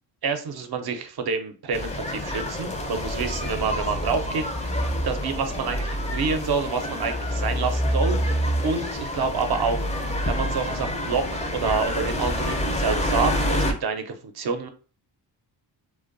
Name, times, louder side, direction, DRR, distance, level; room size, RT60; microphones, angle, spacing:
voice 1, 0.2-4.7 5.0-9.9 10.3-11.3 11.5-14.7, right 5 dB, 55° right, 7 dB, 0.5 m, -28 dB
sound 1, 1.7-13.7, equal, 15° left, 0.4 m, -27 dB
2.5 x 2.1 x 2.5 m, 0.38 s
cardioid pair, 65°, 45 cm